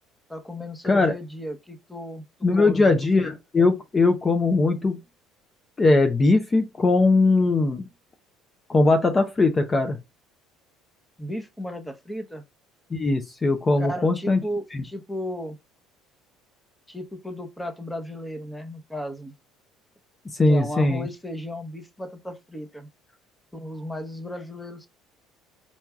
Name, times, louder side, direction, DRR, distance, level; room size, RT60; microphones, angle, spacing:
voice 1, 0.3-2.2 2.5-3.3 11.2-12.4 13.8-15.6 16.9-19.3 20.5-22.9 23.5-24.9, equal, 5° left, 1.0 m, -35 dB
voice 2, 0.8-1.1 2.4-5.0 5.8-7.9 8.7-10.0 12.9-14.4 14.7-14.8 20.4-21.1, left 3 dB, 30° left, 0.7 m, -20 dB
4.5 x 4.1 x 2.4 m
hypercardioid pair, 60°, 0 cm